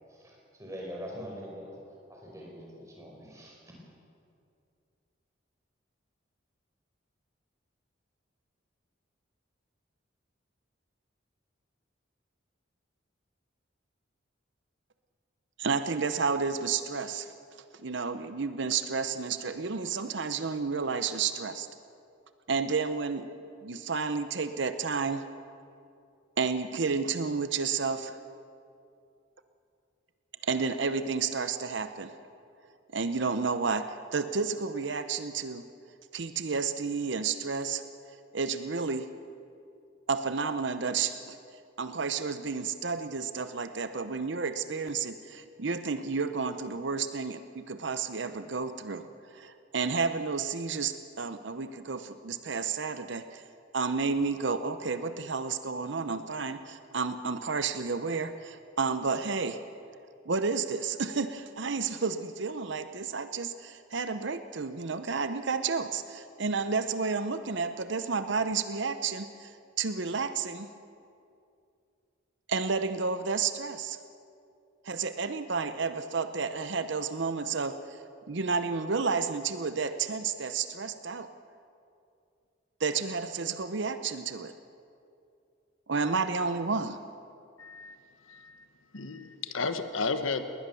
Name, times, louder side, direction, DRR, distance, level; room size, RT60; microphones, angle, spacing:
voice 1, 0.1-1.7 2.1-3.8, equal, 15° right, -2 dB, 4.6 m, -43 dB
voice 2, 15.6-17.3 17.8-21.7 22.5-23.3 23.6-25.2 26.4-28.2 30.4-32.2 32.9-35.6 36.1-37.8 38.3-39.1 40.1-41.4 41.8-49.0 49.3-53.4 53.7-59.6 60.3-70.7 72.5-74.0 74.8-81.3 82.8-84.5 85.9-87.0, right 5 dB, 65° right, 10 dB, 0.8 m, -31 dB
voice 3, 87.6-88.0 88.3-88.6 88.9-90.4, left 4 dB, 85° left, 9 dB, 1.3 m, -33 dB
20.5 x 19.5 x 7.0 m, 2.5 s
head